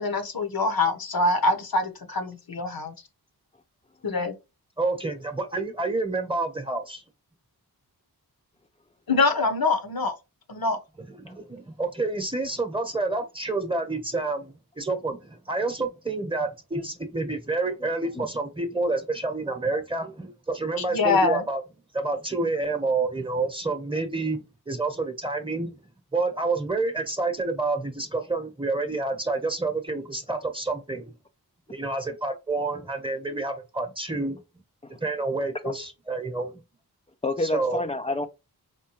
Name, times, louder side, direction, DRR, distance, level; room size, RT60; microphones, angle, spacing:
voice 1, 0.0-2.9 4.0-4.3 9.1-10.1 10.5-10.8 20.9-21.4, left 3 dB, 65° left, 0.9 m, -24 dB
voice 2, 4.8-7.0 11.0-21.6 21.9-25.7 26.1-31.1 31.7-34.4 35.0-36.6 37.4-37.8, right 3 dB, 15° right, 0.9 m, -28 dB
voice 3, 37.2-38.3, left 2 dB, 15° left, 0.3 m, -28 dB
4.3 x 2.2 x 3.0 m
cardioid pair, 50°, 39 cm